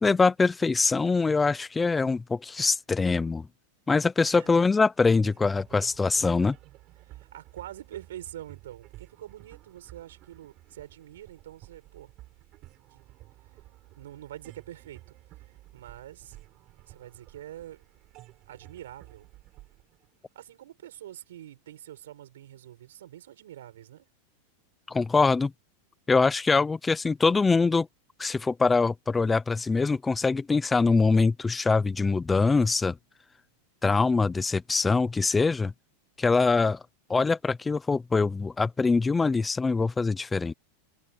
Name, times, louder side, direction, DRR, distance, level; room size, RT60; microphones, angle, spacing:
voice 1, 0.0-3.5 3.9-6.6 24.9-25.5 26.1-27.9 28.2-33.0 33.8-35.7 36.2-36.8 37.1-40.5, left 4 dB, 10° left, 0.5 m, -23 dB
sound 1, 5.2-20.9, right 17 dB, 40° right, 6.8 m, -52 dB
voice 2, 7.0-12.1 12.9-13.0 14.0-15.2 15.7-16.4 16.9-17.8 18.5-19.3 20.3-24.1, right 12 dB, 85° right, 7.1 m, -45 dB
supercardioid pair, 145°, 0 cm